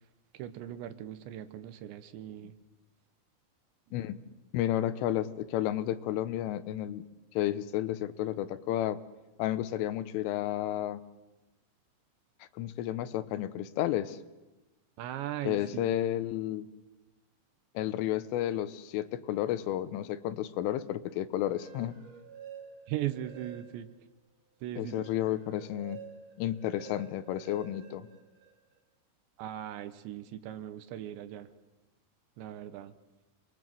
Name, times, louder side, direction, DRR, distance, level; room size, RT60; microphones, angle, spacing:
voice 1, 0.3-2.6 3.9-4.0 15.0-16.0 22.9-23.9 24.6-25.1 29.4-31.5 32.4-32.9, right 12 dB, 75° right, 12 dB, 3.1 m, -39 dB
voice 2, 4.5-7.0 7.4-9.0 9.4-11.0 12.6-14.2 15.5-16.7 17.8-22.0 24.8-26.0 26.4-28.1, left 13 dB, 85° left, 14 dB, 3.5 m, -32 dB
sound 1, 21.4-24.0 24.5-28.8, right 8 dB, 40° right, 3.1 m, -50 dB
28.5 x 22.0 x 7.7 m, 1.1 s
omnidirectional pair, 5.5 m